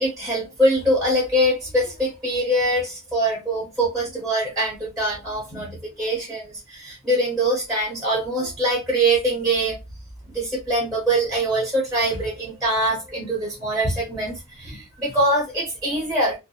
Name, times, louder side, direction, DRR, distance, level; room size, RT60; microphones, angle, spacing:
voice 1, 0.0-5.7 6.0-9.8 10.3-16.4, right 1 dB, ahead, -4 dB, 0.7 m, -23 dB
2.5 x 2.1 x 2.8 m, 0.24 s
head